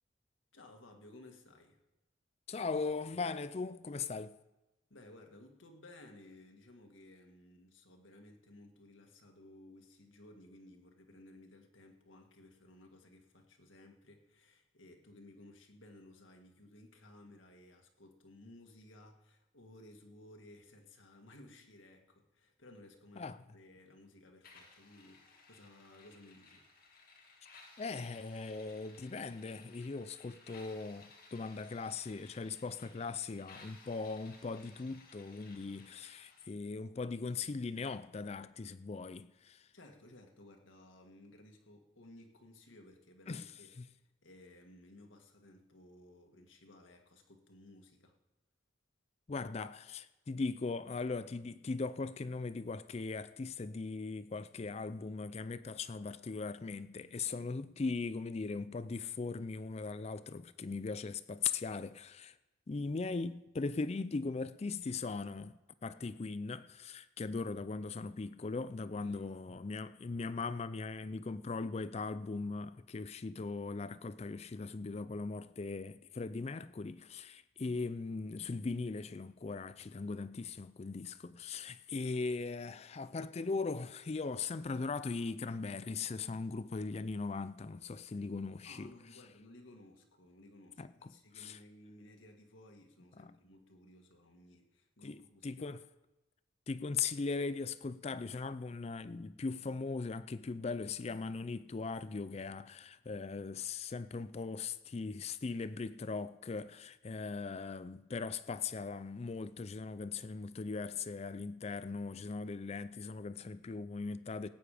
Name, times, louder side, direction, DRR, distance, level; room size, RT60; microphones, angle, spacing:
voice 1, 0.5-1.8 4.9-26.7 39.7-48.2 68.9-69.6 88.6-95.8, left 1 dB, 85° left, 1.8 m, -58 dB
voice 2, 2.5-4.4 23.2-23.4 27.8-39.7 43.3-43.5 43.8-43.9 49.3-62.4 62.7-88.9 90.8-91.1 91.3-91.6 93.2-93.3 95.0-95.8 96.7-114.5, left 4 dB, 35° left, 0.4 m, -39 dB
sound 1, 24.4-36.4, left 4 dB, 50° left, 2.2 m, -59 dB
17.5 x 8.8 x 5.0 m
head